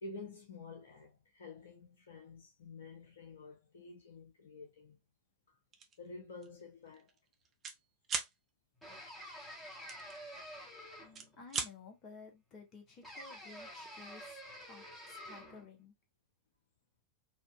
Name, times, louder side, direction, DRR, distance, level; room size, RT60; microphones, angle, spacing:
voice 1, 0.0-5.0 5.5-5.6 6.0-7.1 10.3-10.4, left 3 dB, 65° left, 0.7 m, -50 dB
sound 1, 5.7-6.0 6.4-6.6 6.9-7.8 8.0-8.3 9.9-10.7 11.0-11.7, right 6 dB, 25° right, 0.7 m, -38 dB
sound 2, 8.8-11.4 13.0-15.7, equal, 5° left, 1.6 m, -49 dB
voice 2, 11.4-15.9, left 4 dB, 35° left, 1.3 m, -54 dB
4.1 x 2.7 x 2.3 m
figure-of-eight pair, 90°, 0 cm